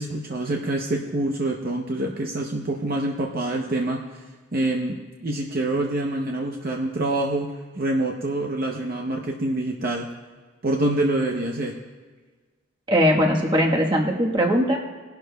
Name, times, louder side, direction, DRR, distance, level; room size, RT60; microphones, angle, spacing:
voice 1, 0.0-4.0 4.5-5.0 5.2-10.1 10.6-11.7, right 1 dB, 45° right, 1 dB, 0.7 m, -26 dB
voice 2, 12.9-14.8, equal, 20° right, 0 dB, 1.2 m, -20 dB
19.5 x 11.5 x 2.2 m, 1.4 s
head